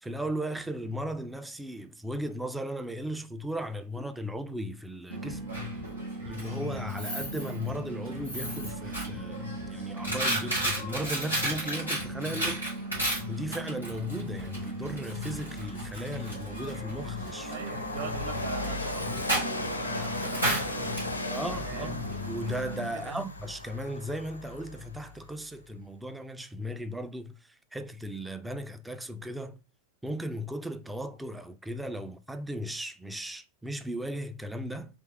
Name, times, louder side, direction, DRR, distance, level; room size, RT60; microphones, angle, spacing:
voice 1, 0.0-5.4 6.3-12.6 13.3-17.5 21.3-29.6 30.0-35.0, equal, 5° right, 0.3 m, -36 dB
Coin (dropping), 5.1-22.9, right 1 dB, 90° right, 1.7 m, -34 dB
Train, 14.3-14.4 14.8-25.2, left 3 dB, 80° left, 0.5 m, -38 dB
voice 2, 17.5-22.1 22.9-23.2, right 5 dB, 50° right, 0.7 m, -41 dB
3.5 x 3.0 x 2.9 m
figure-of-eight pair, 90°, 0 cm